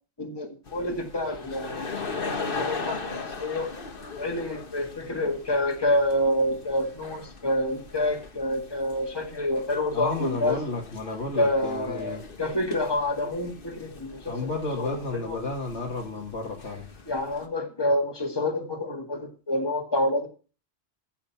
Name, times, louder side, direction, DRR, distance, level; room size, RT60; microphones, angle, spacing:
voice 1, 0.2-2.0 2.3-3.7 4.2-10.6 11.4-14.3 14.8-15.4 17.1-20.3, left 1 dB, 20° left, 3 dB, 1.9 m, -28 dB
sound 1, 0.7-17.5, left 4 dB, 55° left, 1.6 m, -39 dB
voice 2, 9.9-12.2 14.3-16.9, left 2 dB, 80° left, -1 dB, 2.3 m, -32 dB
15.0 x 6.6 x 5.7 m, 0.36 s
omnidirectional pair, 1.2 m